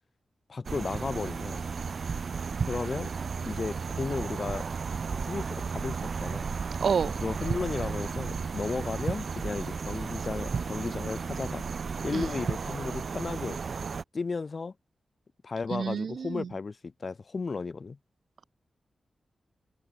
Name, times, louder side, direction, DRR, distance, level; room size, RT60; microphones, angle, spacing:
voice 1, 0.5-1.6 2.6-3.1 3.4-4.7 5.2-6.5 7.2-11.6 12.0-13.6 14.1-14.7 15.4-18.0, left 4 dB, 45° left, 1.1 m, -34 dB
sound 1, 0.6-14.0, right 5 dB, 55° right, 2.0 m, -33 dB
voice 2, 6.8-7.2 12.1-12.3 15.7-16.5, right 6 dB, 70° right, 2.5 m, -29 dB
wide cardioid pair, 115°, 0 cm